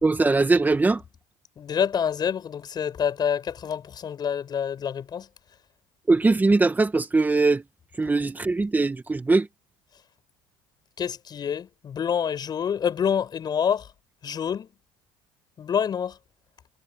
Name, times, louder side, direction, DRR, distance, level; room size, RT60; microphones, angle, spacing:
voice 1, 0.0-1.0 6.1-7.6 8.0-9.5, right 3 dB, 15° right, 2.2 m, -21 dB
voice 2, 1.6-5.3 11.0-13.9 14.2-14.7 15.6-16.2, left 8 dB, 45° left, 7.4 m, -27 dB
supercardioid pair, 85°, 10 cm